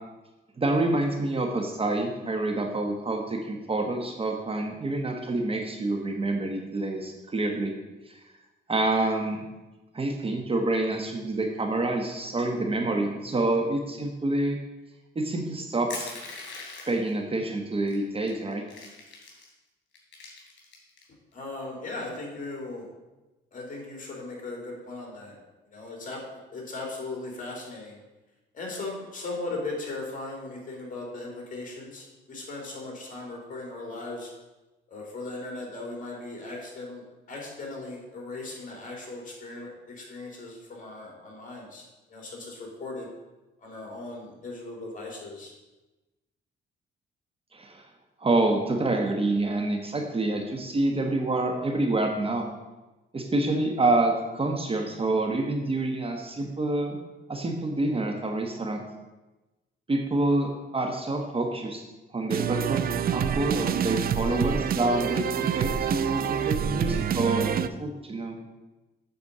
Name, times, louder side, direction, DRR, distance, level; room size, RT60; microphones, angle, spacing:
voice 1, 0.6-7.7 8.1-8.2 8.7-9.4 9.9-14.6 15.1-16.1 16.9-18.6 47.5-47.8 48.2-52.5 53.1-57.0 57.3-58.8 59.9-61.8 62.1-62.8 63.1-67.5 67.8-68.4, right 2 dB, 30° right, 3 dB, 1.1 m, -27 dB
Crushing, 15.9-17.1 17.9-18.0 18.3-19.5 19.9-21.0, left 3 dB, 65° left, 3.1 m, -40 dB
voice 2, 21.3-22.9 23.5-25.4 25.7-26.2 26.5-28.0 28.5-34.3 34.9-37.0 37.3-41.8 42.1-43.1 43.6-45.5, left 2 dB, 40° left, -1 dB, 3.1 m, -38 dB
sound 1, 62.3-67.7, right 9 dB, 50° right, 0.5 m, -27 dB
8.4 x 4.3 x 6.7 m, 1.1 s
cardioid pair, 90°, 20 cm